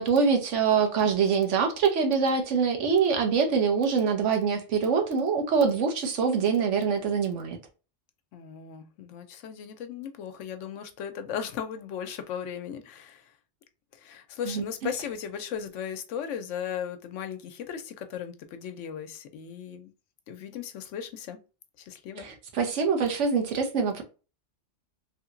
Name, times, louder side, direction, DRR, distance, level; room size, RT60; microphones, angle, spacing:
voice 1, 0.0-7.6 14.5-14.6 22.2-24.0, right 5 dB, 80° right, 1.2 m, -24 dB
voice 2, 8.3-13.3 13.9-19.9 20.3-21.4 21.8-22.3, left 8 dB, 85° left, 0.9 m, -37 dB
3.2 x 2.8 x 2.5 m
omnidirectional pair, 1.2 m